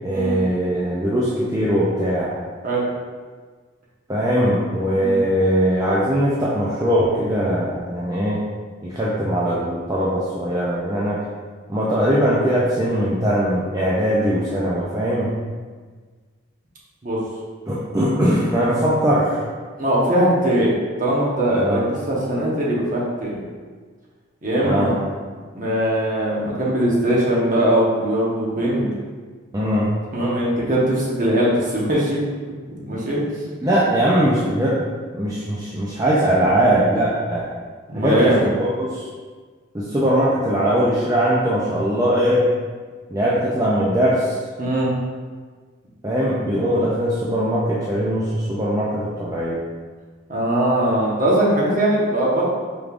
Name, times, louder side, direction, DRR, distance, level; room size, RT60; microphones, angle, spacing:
voice 1, 0.0-2.4 4.1-8.4 8.8-11.2 11.7-15.3 17.7-19.5 21.6-21.8 24.6-24.9 29.5-29.9 33.6-34.8 35.1-37.5 37.9-39.1 39.7-42.5 43.1-44.4 46.0-49.6, equal, 15° right, -8 dB, 0.5 m, -20 dB
voice 2, 4.9-5.2 17.0-17.2 19.8-20.7 21.0-21.8 22.1-23.4 24.4-25.0 25.5-28.9 30.1-32.2 32.8-33.2 37.9-38.4 44.6-44.9 50.3-52.5, right 1 dB, 40° right, -5 dB, 1.0 m, -20 dB
5.0 x 3.5 x 2.5 m, 1.5 s
head